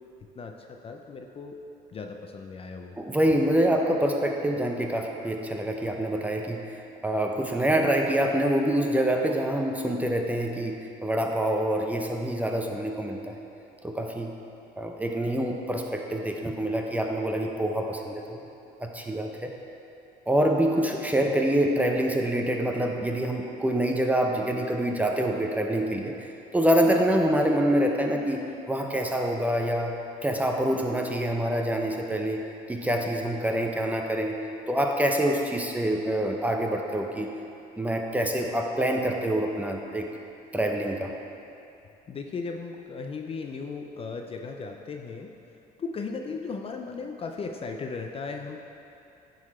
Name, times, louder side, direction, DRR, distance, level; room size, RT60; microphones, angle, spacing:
voice 1, 0.4-1.5 1.9-2.9 42.1-45.3 45.8-48.6, left 4 dB, 35° left, 4 dB, 0.5 m, -36 dB
voice 2, 3.0-6.8 7.0-13.3 13.8-14.3 14.8-18.4 18.8-19.5 20.3-26.1 26.5-28.4 28.7-32.4 32.7-34.4 34.7-37.3 37.8-40.1 40.5-41.1, right 1 dB, 10° right, 1 dB, 0.6 m, -26 dB
9.7 x 4.0 x 4.2 m, 2.7 s
cardioid pair, 110°, 17 cm